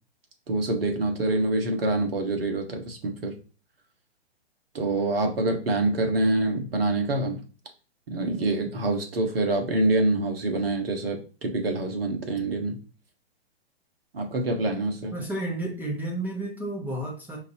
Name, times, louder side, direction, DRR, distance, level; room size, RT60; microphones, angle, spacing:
voice 1, 0.5-3.3 4.7-7.4 8.1-12.8 14.1-15.1, right 2 dB, 65° right, 4 dB, 1.3 m, -26 dB
voice 2, 15.1-17.4, right 1 dB, 5° right, -2 dB, 0.9 m, -31 dB
5.3 x 2.7 x 2.8 m, 0.36 s
figure-of-eight pair, 110°, 32 cm